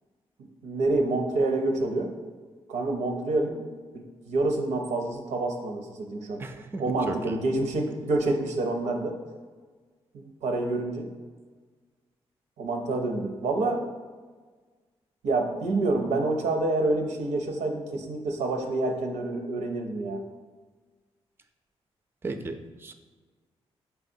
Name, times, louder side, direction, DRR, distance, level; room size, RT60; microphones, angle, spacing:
voice 1, 0.6-2.1 2.7-3.7 4.3-6.4 6.8-9.2 10.1-11.1 12.6-13.8 15.2-20.2, right 2 dB, 90° right, 2 dB, 0.5 m, -27 dB
voice 2, 6.4-7.4 22.2-22.9, right 3 dB, 20° right, 7 dB, 0.3 m, -35 dB
4.6 x 3.3 x 2.6 m, 1.4 s
cardioid pair, 60°, 12 cm